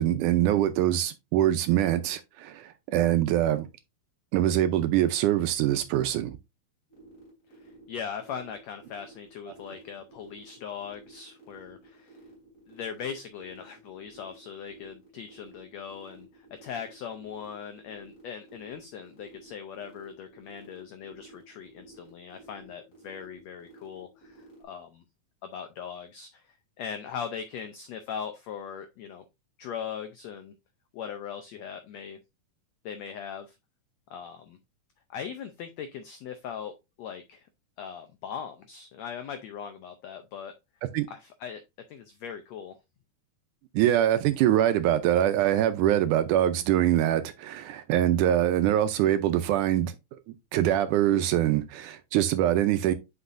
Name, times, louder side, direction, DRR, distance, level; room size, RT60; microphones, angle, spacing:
voice 1, 0.0-3.7 4.3-6.4 40.9-41.1 43.7-49.9 50.5-52.9, right 12 dB, 80° right, 1.9 m, -24 dB
sound 1, 6.9-24.6, right 2 dB, 45° left, 4.4 m, -53 dB
voice 2, 7.5-12.2 12.7-25.0 25.4-29.2 29.6-30.5 30.9-32.2 32.8-33.6 34.1-34.6 35.1-37.5 37.8-40.5 41.1-41.6 41.9-42.8, left 7 dB, 85° left, 1.5 m, -40 dB
8.1 x 5.5 x 2.5 m
omnidirectional pair, 3.9 m